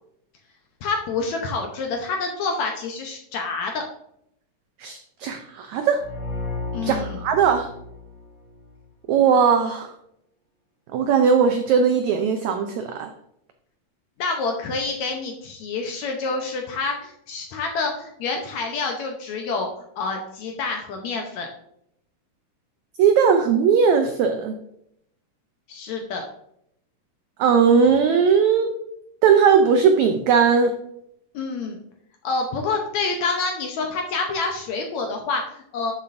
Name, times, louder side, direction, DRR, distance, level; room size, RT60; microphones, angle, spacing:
voice 1, 0.8-3.8 6.7-7.2 14.2-19.7 20.0-21.5 25.7-26.2 31.3-31.8 32.2-35.9, left 4 dB, 70° left, 3 dB, 1.8 m, -27 dB
voice 2, 4.8-6.0 6.8-7.7 9.1-9.9 10.9-13.1 23.0-24.6 27.4-28.7 29.2-30.8, right 6 dB, 85° right, 6 dB, 1.6 m, -18 dB
sound 1, 6.0-8.8, left 3 dB, 40° left, 3.8 m, -33 dB
12.0 x 7.2 x 2.6 m, 0.75 s
omnidirectional pair, 4.0 m